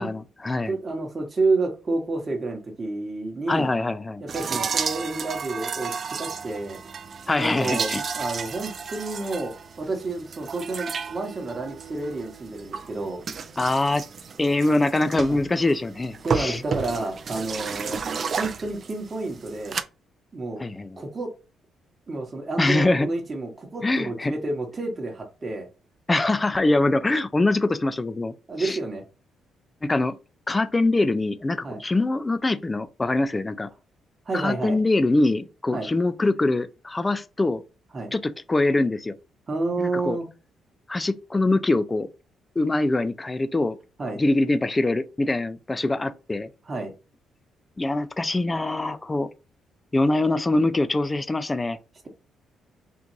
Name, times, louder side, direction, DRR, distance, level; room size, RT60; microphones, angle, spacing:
voice 1, 0.0-0.8 3.5-4.2 7.3-8.0 13.6-14.0 14.4-16.6 20.6-21.0 22.6-23.1 23.8-24.3 26.1-28.8 29.8-30.1 30.5-33.7 34.3-37.6 38.1-39.1 39.8-40.2 40.9-42.1 42.6-43.8 44.2-46.5 47.8-49.3 49.9-51.8, left 2 dB, 20° left, 0.4 m, -23 dB
voice 2, 0.7-3.7 4.2-5.9 6.2-6.8 7.3-7.9 8.1-13.2 15.3-15.4 16.2-18.0 18.4-19.8 20.3-20.6 21.0-21.3 22.1-25.7 28.5-29.0 31.6-31.8 34.3-34.8 35.7-35.9 37.9-38.1 39.5-40.3 44.0-44.2 46.7-46.9, right 2 dB, 35° right, 1.0 m, -29 dB
sound 1, 4.3-19.8, right 6 dB, 50° right, 0.4 m, -33 dB
3.7 x 2.5 x 3.0 m
cardioid pair, 90°, 0 cm